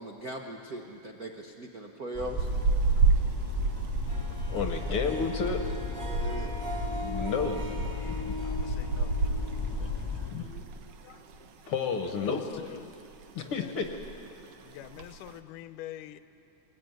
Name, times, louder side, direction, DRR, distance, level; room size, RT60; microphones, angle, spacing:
voice 1, 0.0-2.5 6.2-6.6, right 1 dB, 85° right, 2 dB, 0.8 m, -39 dB
sound 1, 2.1-10.3, left 4 dB, 20° left, 0.6 m, -36 dB
sound 2, 2.4-10.9 11.1-11.4 11.8-12.6 12.9-13.3 13.6-13.7 13.8-14.3 14.8-15.3, right 4 dB, 65° right, 1.8 m, -30 dB
voice 2, 3.9-5.6 6.1-6.4 6.9-8.3 9.8-9.9 10.2-10.6 11.0-12.6 13.3-13.9, left 5 dB, 60° left, 5 dB, 1.7 m, -33 dB
Harp, 4.1-10.3, equal, 10° right, 2.0 m, -40 dB
voice 3, 8.4-9.2 12.0-13.0 13.4-13.7 14.6-16.2, left 13 dB, 90° left, 12 dB, 2.3 m, -46 dB
22.0 x 19.5 x 9.2 m, 2.7 s
omnidirectional pair, 3.6 m